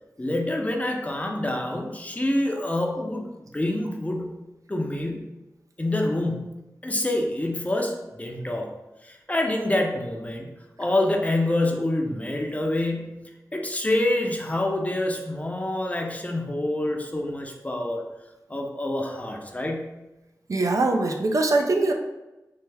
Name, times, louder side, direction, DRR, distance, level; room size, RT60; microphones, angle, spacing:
voice 1, 0.2-3.3 3.5-4.4 4.7-5.3 5.8-8.7 9.0-18.0 18.5-19.9, left 1 dB, 20° left, 1 dB, 0.6 m, -27 dB
voice 2, 20.5-21.9, right 2 dB, 55° right, 3 dB, 0.4 m, -22 dB
3.3 x 2.1 x 3.3 m, 1.0 s
cardioid pair, 45°, 7 cm